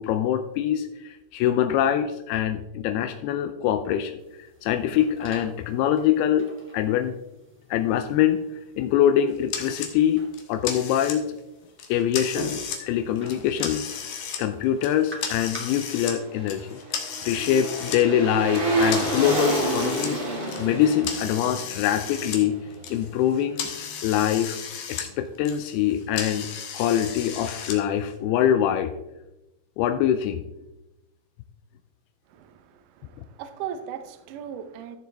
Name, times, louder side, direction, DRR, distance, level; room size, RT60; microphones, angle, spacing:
voice 1, 0.0-4.2 4.6-6.5 6.7-7.2 7.7-8.4 8.8-11.3 11.9-13.9 14.4-16.8 17.3-20.2 20.6-22.6 22.9-23.7 24.0-24.6 24.9-26.5 26.7-28.9 29.8-30.4, left 10 dB, 85° left, 9 dB, 2.5 m, -24 dB
sound 1, 4.2-15.6, equal, 5° right, 1.2 m, -45 dB
sound 2, 9.5-9.9 10.3-11.4 11.8-12.8 13.2-14.4 14.8-16.2 16.5-18.0 18.5-22.4 22.7-25.1 25.3-27.8, left 7 dB, 65° left, 2.6 m, -34 dB
sound 3, 15.9-23.1 23.4-23.5, right 1 dB, 20° right, 1.4 m, -29 dB
voice 2, 32.3-35.0, right 8 dB, 75° right, 9 dB, 1.9 m, -38 dB
14.0 x 7.1 x 3.4 m, 0.95 s
omnidirectional pair, 4.5 m